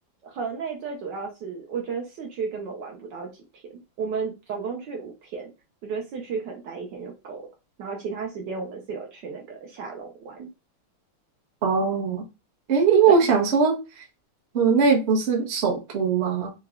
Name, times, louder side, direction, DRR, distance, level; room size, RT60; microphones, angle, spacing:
voice 1, 0.2-5.5 5.8-7.4 7.8-10.5 13.1-13.2, right 5 dB, 65° right, 1.2 m, -33 dB
voice 2, 11.6-12.2 12.7-13.7 14.5-16.5, right 5 dB, 50° right, 0.8 m, -20 dB
4.7 x 2.3 x 2.3 m
omnidirectional pair, 2.3 m